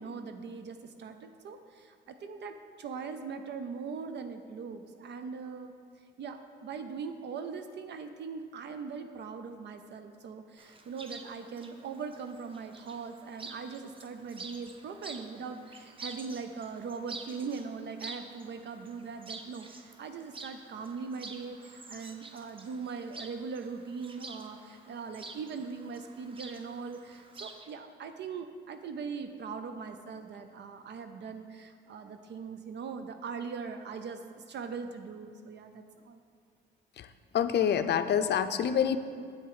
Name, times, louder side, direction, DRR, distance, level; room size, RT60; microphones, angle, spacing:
voice 1, 0.0-5.7 6.2-34.2 34.5-36.2, right 5 dB, 60° right, 8 dB, 0.6 m, -40 dB
Chirp tweet, 10.6-27.7, right 3 dB, 25° right, 0.7 m, -48 dB
voice 2, 37.3-39.0, left 8 dB, 60° left, 10 dB, 0.5 m, -26 dB
8.0 x 6.8 x 4.8 m, 2.3 s
cardioid pair, 90°, 20 cm